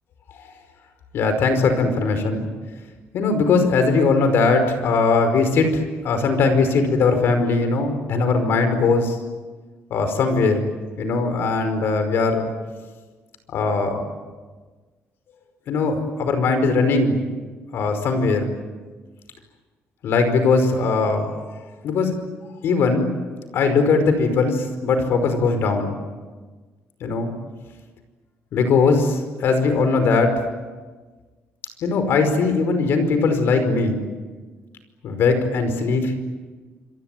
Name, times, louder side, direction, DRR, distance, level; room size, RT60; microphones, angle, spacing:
voice 1, 1.1-2.5 3.1-9.2 9.9-10.6 11.0-12.5 13.5-14.0 15.7-17.3 17.7-18.5 20.0-21.3 21.8-22.2 22.6-23.1 23.5-26.0 27.0-27.3 28.5-30.4 31.8-34.0 35.0-36.2, left 4 dB, 60° left, 8 dB, 5.2 m, -20 dB
27.5 x 23.0 x 9.4 m, 1.4 s
cardioid pair, 170°, 4 cm